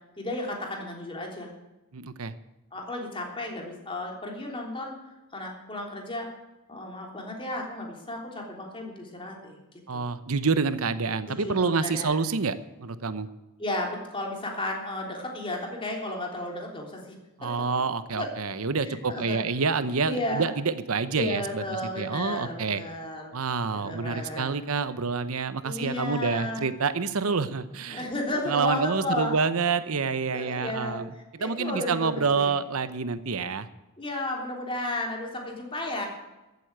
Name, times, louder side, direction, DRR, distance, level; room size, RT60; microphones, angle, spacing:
voice 1, 0.2-1.5 2.7-4.9 5.3-6.3 6.7-9.6 9.9-10.0 11.2-12.2 13.6-17.0 17.4-17.6 18.1-18.3 18.8-19.4 20.1-20.5 21.2-23.3 23.7-24.5 25.6-26.6 27.9-29.3 30.3-32.5 34.0-36.1, left 1 dB, 25° left, 0 dB, 3.4 m, -33 dB
voice 2, 1.9-2.3 9.9-13.3 17.4-21.6 22.0-22.8 23.3-28.1 28.5-31.1 31.3-33.7, right 4 dB, 85° right, 13 dB, 0.9 m, -27 dB
14.5 x 8.2 x 9.0 m, 1.0 s
head